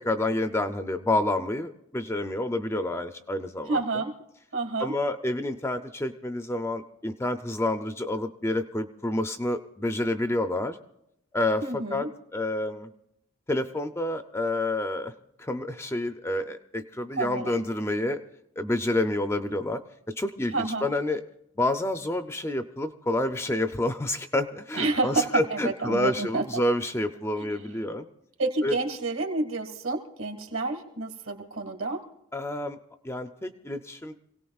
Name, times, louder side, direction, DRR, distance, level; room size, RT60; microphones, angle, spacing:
voice 1, 0.0-3.8 4.8-10.8 11.3-12.1 12.3-12.9 13.5-15.1 15.4-18.2 18.6-19.8 20.2-21.2 21.6-28.1 28.6-28.7 32.3-32.8 33.0-34.2, left 1 dB, 10° left, 7 dB, 0.4 m, -28 dB
voice 2, 3.7-4.1 4.5-4.9 11.6-12.1 17.2-17.6 20.5-20.9 24.7-26.6 27.4-27.5 28.4-32.0, right 3 dB, 65° right, 2 dB, 1.9 m, -29 dB
27.5 x 17.5 x 2.4 m, 0.81 s
head